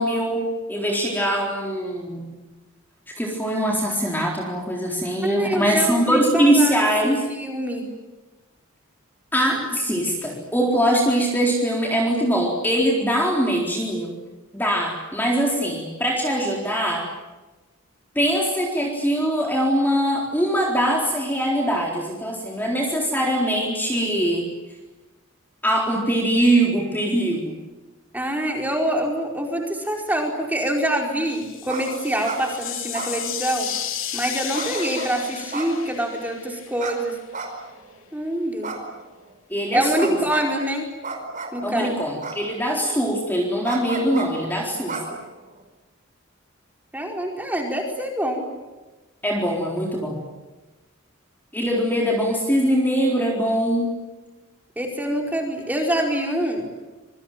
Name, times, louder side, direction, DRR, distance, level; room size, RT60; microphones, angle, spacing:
voice 1, 0.0-2.3 3.2-7.3 9.3-14.1 14.5-17.1 18.2-24.5 25.6-27.6 39.5-40.2 41.6-45.0 49.2-50.2 51.5-54.0, equal, 10° left, -1 dB, 4.1 m, -22 dB
voice 2, 5.2-6.8 7.3-7.8 28.1-33.7 34.1-37.1 38.1-38.7 39.7-40.9 41.5-42.0 46.9-48.4 54.8-56.7, right 1 dB, 10° right, 1 dB, 4.7 m, -25 dB
sound 1, 31.3-37.2, left 10 dB, 65° left, 3.1 m, -33 dB
sound 2, 31.7-31.8 32.1-32.4 32.9-33.7 34.5-35.1 35.5-36.2 36.8-36.9 37.3-37.9 38.6-39.3 39.9-40.5 41.0-41.6 42.2-42.8 43.6-44.3 44.9-45.6, right 4 dB, 35° right, 5.0 m, -32 dB
26.5 x 24.0 x 9.2 m, 1.1 s
head